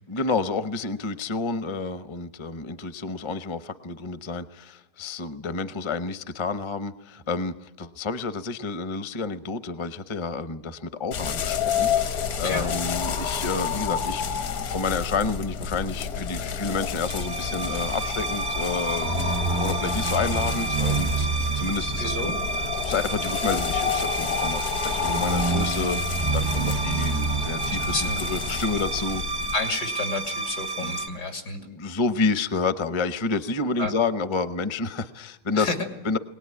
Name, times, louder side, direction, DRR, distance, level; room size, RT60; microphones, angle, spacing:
voice 1, 0.1-21.3 21.5-29.2 30.8-31.0 31.5-35.7 36.0-36.2, left 4 dB, 30° left, 12 dB, 0.5 m, -30 dB
sound 1, 11.1-29.6, left 7 dB, 65° left, 1.5 m, -30 dB
sound 2, 16.9-31.1, right 3 dB, 30° right, 0.5 m, -28 dB
voice 2, 22.0-22.4 27.8-28.2 29.5-31.6 33.8-33.9 35.5-35.9, left 3 dB, 90° left, 4 dB, 3.3 m, -30 dB
21.5 x 18.5 x 9.7 m, 0.92 s
omnidirectional pair, 1.8 m